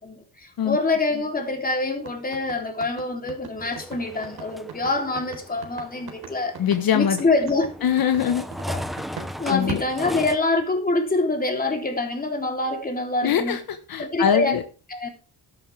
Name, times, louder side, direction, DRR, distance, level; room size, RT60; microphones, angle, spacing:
voice 1, 0.0-6.6 6.9-7.7 8.7-8.8 9.4-13.6 14.0-14.6 14.9-15.1, left 3 dB, 20° left, 3.5 m, -25 dB
sound 1, 2.0-9.3 9.7-10.8, right 6 dB, 65° right, 4.2 m, -39 dB
sound 2, 3.6-10.4, equal, ahead, 1.0 m, -37 dB
voice 2, 6.6-7.2 7.8-8.5 9.5-9.8 13.2-14.6, left 8 dB, 60° left, 1.4 m, -22 dB
12.5 x 11.5 x 3.5 m
cardioid pair, 120°, 39 cm